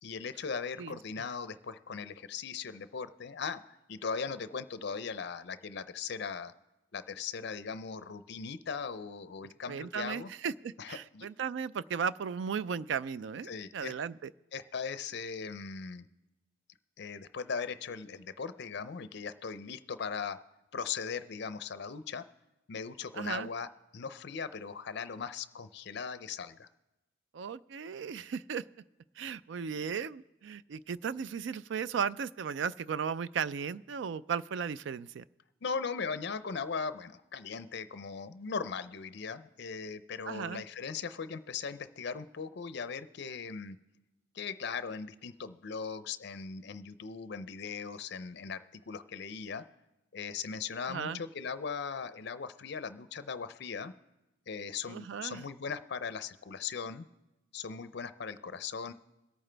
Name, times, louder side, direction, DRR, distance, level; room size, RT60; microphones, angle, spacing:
voice 1, 0.0-6.5 6.9-10.3 10.8-11.3 13.5-13.9 14.5-16.1 17.0-20.4 20.7-22.2 22.7-23.7 23.9-26.7 35.6-43.8 44.3-49.6 50.1-53.9 54.5-57.1 57.5-58.9, left 5 dB, 60° left, 12 dB, 0.5 m, -39 dB
voice 2, 0.8-1.2 9.7-14.3 23.2-23.5 27.3-28.6 29.2-35.2 40.3-40.6 50.9-51.2 54.9-55.4, right 6 dB, 65° right, 17 dB, 0.3 m, -36 dB
22.5 x 8.8 x 3.3 m, 0.98 s
head